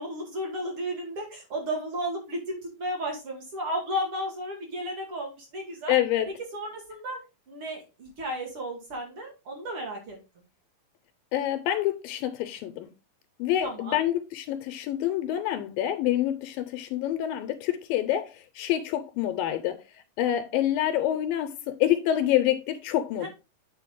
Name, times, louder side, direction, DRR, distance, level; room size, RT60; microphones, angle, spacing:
voice 1, 0.0-6.0 6.5-7.2 7.5-10.2 13.6-14.0 23.2-23.3, equal, 45° right, 2.5 m, -33 dB
voice 2, 5.9-6.3 11.3-12.9 13.4-19.8 20.2-23.3, left 12 dB, 80° left, 2.2 m, -27 dB
8.2 x 5.1 x 3.6 m
omnidirectional pair, 4.2 m